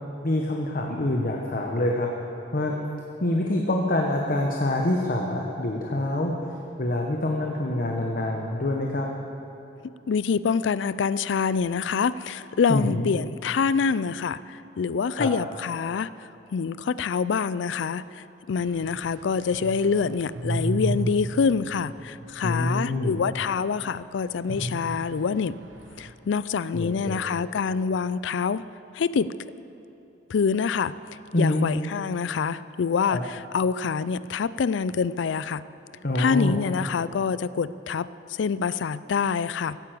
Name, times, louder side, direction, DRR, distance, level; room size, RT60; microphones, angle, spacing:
voice 1, 0.2-2.1 2.5-2.8 3.2-9.1 12.7-13.1 15.1-15.3 22.4-23.2 26.7-27.2 31.3-31.6 33.1-33.2 36.0-36.6, left 1 dB, 50° left, 1 dB, 1.1 m, -26 dB
voice 2, 10.1-16.1 16.5-18.0 18.5-25.6 26.0-28.7 28.9-29.3 30.3-31.0 31.4-35.6 36.2-39.8, left 5 dB, 70° left, 17 dB, 0.4 m, -26 dB
sound 1, 18.6-22.9 23.3-23.4 24.5-26.1, right 2 dB, 75° right, 1.0 m, -34 dB
15.5 x 9.6 x 7.7 m, 2.8 s
head